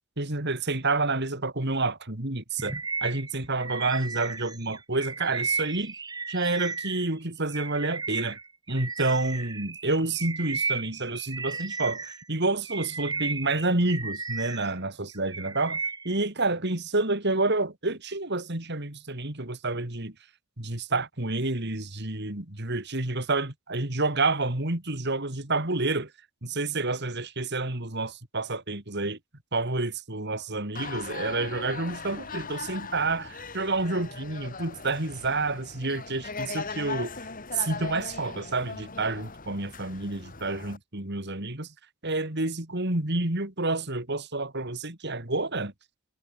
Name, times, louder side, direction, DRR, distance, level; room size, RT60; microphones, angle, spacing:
voice 1, 0.2-2.7 3.0-5.9 6.3-8.4 8.7-15.8 16.0-20.1 20.6-26.1 26.4-29.2 29.5-37.1 37.5-41.7 42.0-45.7, right 2 dB, 50° right, 3.1 m, -29 dB
Bird vocalization bird call bird song, 2.6-7.1 7.5-12.2 12.6-14.7 15.1-16.1, right 4 dB, 20° right, 1.7 m, -34 dB
sound 1, 30.8-40.8, left 4 dB, 40° left, 3.1 m, -39 dB
head